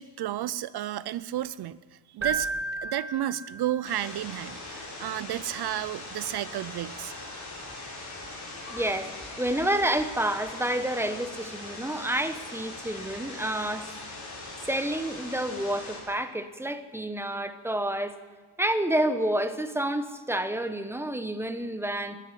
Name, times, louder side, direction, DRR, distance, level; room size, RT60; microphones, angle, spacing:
voice 1, 0.0-1.8 2.1-2.5 2.8-7.1, right 13 dB, 50° right, 18 dB, 0.5 m, -32 dB
Keyboard (musical), 2.2-4.0, right 3 dB, 25° right, 1.8 m, -33 dB
sound 1, 3.8-16.0, left 2 dB, 30° left, 6.4 m, -41 dB
voice 2, 8.7-9.1 9.4-13.9 14.7-18.1 18.6-22.2, right 1 dB, 5° right, 10 dB, 0.9 m, -29 dB
12.0 x 10.0 x 9.8 m, 1.5 s
cardioid pair, 115°, 50 cm